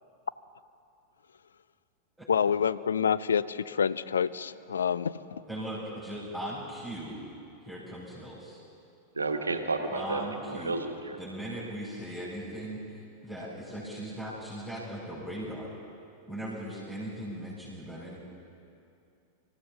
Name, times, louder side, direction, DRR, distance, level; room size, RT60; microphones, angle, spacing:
voice 1, 2.3-5.4, left 7 dB, 70° left, 17 dB, 0.4 m, -27 dB
voice 2, 5.5-7.2 7.6-8.6 9.9-10.8 11.2-15.8 16.3-18.2, right 1 dB, ahead, -10 dB, 5.2 m, -38 dB
voice 3, 9.1-11.2, right 3 dB, 80° right, 6 dB, 1.2 m, -32 dB
26.0 x 15.0 x 3.7 m, 2.5 s
figure-of-eight pair, 90°, 0 cm